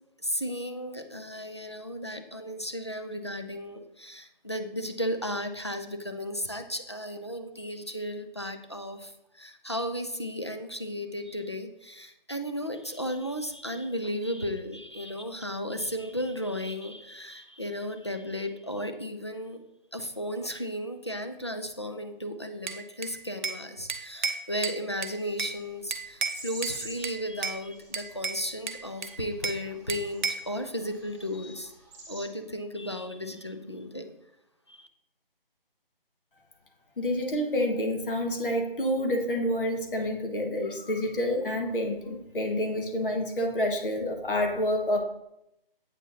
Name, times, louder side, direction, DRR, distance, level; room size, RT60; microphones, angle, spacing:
voice 1, 0.2-19.6 19.9-31.7 32.1-34.1 34.7-34.9, equal, 30° left, 7 dB, 0.4 m, -34 dB
Bell / Glass, 22.7-23.6 23.9-25.6 25.9-26.8 27.0-27.6 27.9-29.6 29.9-30.5, right 5 dB, 55° right, 0.6 m, -33 dB
sound 1, 25.2-32.2, right 2 dB, 15° right, 1.7 m, -48 dB
voice 2, 37.0-45.0, left 1 dB, 65° left, 3 dB, 1.4 m, -28 dB
8.1 x 4.5 x 2.7 m, 0.81 s
figure-of-eight pair, 165°, 29 cm